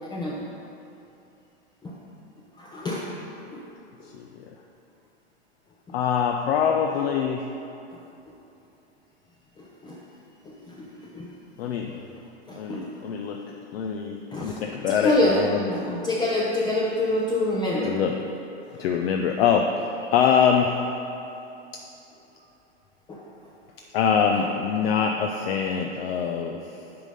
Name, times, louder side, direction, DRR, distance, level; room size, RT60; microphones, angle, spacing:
voice 1, 0.0-0.4 1.8-2.0 2.6-3.1 3.5-3.6 4.0-4.1 7.9-8.0 9.6-10.0 10.4-11.3 11.6-11.7 12.5-13.0 14.3-14.6 15.0-15.4 15.7-18.0 23.1-23.2 24.3-24.4, left 1 dB, 10° left, -4 dB, 0.6 m, -27 dB
voice 2, 4.0-4.5 5.9-7.5 11.6-12.1 12.5-15.7 17.8-18.2 18.7-20.8 23.9-26.8, left 7 dB, 60° left, 3 dB, 0.6 m, -24 dB
9.8 x 3.8 x 5.2 m, 2.9 s
hypercardioid pair, 115°, 34 cm